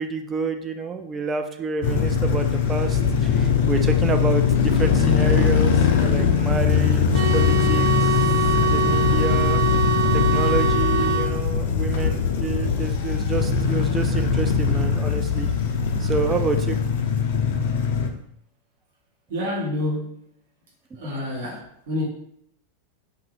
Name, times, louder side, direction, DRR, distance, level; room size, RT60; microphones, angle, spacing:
voice 1, 0.0-7.1 7.3-8.1 8.6-9.6 10.1-15.5 16.0-16.8, right 4 dB, 20° right, 6 dB, 0.3 m, -28 dB
sound 1, 1.8-18.1, left 6 dB, 55° left, 0.4 m, -21 dB
sound 2, 7.1-11.3, right 3 dB, 40° right, 0.7 m, -24 dB
voice 2, 19.3-20.3 21.0-22.0, left 1 dB, 60° right, -4 dB, 1.2 m, -28 dB
2.6 x 2.5 x 3.1 m, 0.71 s
figure-of-eight pair, 90°, 0 cm